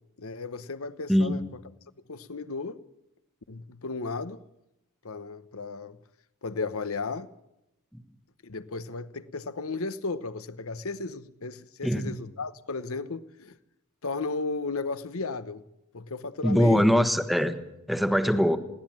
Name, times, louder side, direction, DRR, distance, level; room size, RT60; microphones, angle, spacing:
voice 1, 0.2-1.6 2.1-2.8 3.5-4.4 5.0-6.0 6.4-7.3 8.4-13.6 14.0-15.6 15.9-17.0, left 3 dB, 65° left, 1.0 m, -34 dB
voice 2, 1.1-1.4 11.8-12.2 16.4-17.6 17.9-18.6, equal, ahead, 1.2 m, -22 dB
21.5 x 17.0 x 7.4 m
head